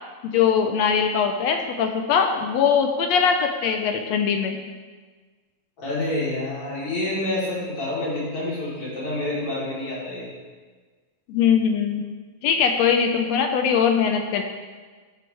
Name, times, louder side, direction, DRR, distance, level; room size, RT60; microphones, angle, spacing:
voice 1, 0.2-4.6 11.3-12.0 12.4-14.4, left 7 dB, 75° left, 5 dB, 1.7 m, -21 dB
voice 2, 5.8-10.3, left 1 dB, 50° left, -8 dB, 4.3 m, -28 dB
13.0 x 9.1 x 3.4 m, 1.5 s
omnidirectional pair, 3.4 m